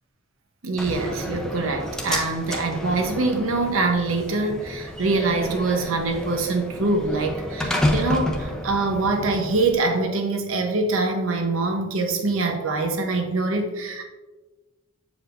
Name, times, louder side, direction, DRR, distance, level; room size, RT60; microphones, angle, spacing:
voice 1, 0.6-14.0, right 3 dB, 80° right, 4 dB, 0.9 m, -24 dB
Slam, 0.8-9.8, equal, 5° left, 0.7 m, -30 dB
8.1 x 4.9 x 2.6 m, 1.2 s
head